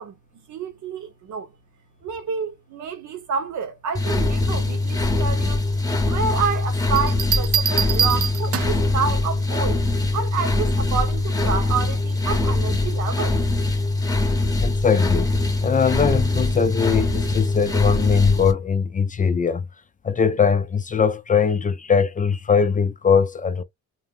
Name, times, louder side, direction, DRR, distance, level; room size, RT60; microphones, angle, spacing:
voice 1, 0.0-1.5 2.0-5.6 6.0-9.8 10.1-13.4, right 6 dB, 75° right, 1.1 m, -29 dB
sound 1, 3.9-18.5, left 2 dB, 10° left, 0.8 m, -22 dB
Bell, 7.0-8.9 10.5-10.9, right 8 dB, 50° right, 0.4 m, -24 dB
voice 2, 14.6-15.3 15.6-19.7 20.0-23.6, left 6 dB, 25° left, 0.4 m, -21 dB
2.6 x 2.1 x 3.4 m
cardioid pair, 90°, 30 cm